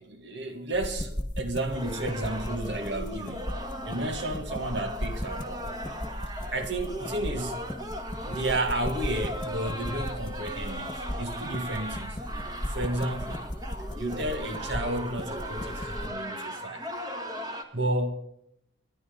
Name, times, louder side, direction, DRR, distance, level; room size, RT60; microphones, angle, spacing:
voice 1, 0.0-3.5 3.8-5.8 6.5-7.6 8.3-12.2 12.7-13.5 14.0-17.0 17.7-18.2, right 1 dB, 65° right, 2.1 m, -32 dB
sound 1, 0.7-16.1, left 1 dB, 25° left, 1.5 m, -37 dB
sound 2, 1.7-17.6, equal, 20° right, 1.7 m, -38 dB
29.5 x 11.0 x 3.9 m
head